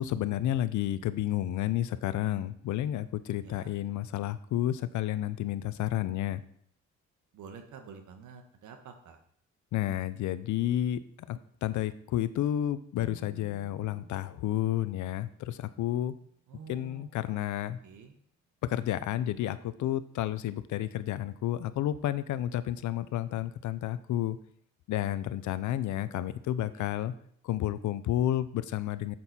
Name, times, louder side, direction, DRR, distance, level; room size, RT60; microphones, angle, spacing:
voice 1, 0.0-6.4 9.7-11.0 11.3-16.1 16.7-17.8 18.6-24.4 24.9-27.1 27.4-29.2, left 12 dB, 75° left, 15 dB, 0.7 m, -31 dB
voice 2, 3.4-3.7 7.3-9.2 16.5-17.5 17.8-18.1 26.7-26.9, right 6 dB, 75° right, 6 dB, 1.5 m, -49 dB
sound 1, 13.0-16.9, equal, 50° right, 3.2 m, -55 dB
8.0 x 7.8 x 4.3 m, 0.64 s
cardioid pair, 90°, 30 cm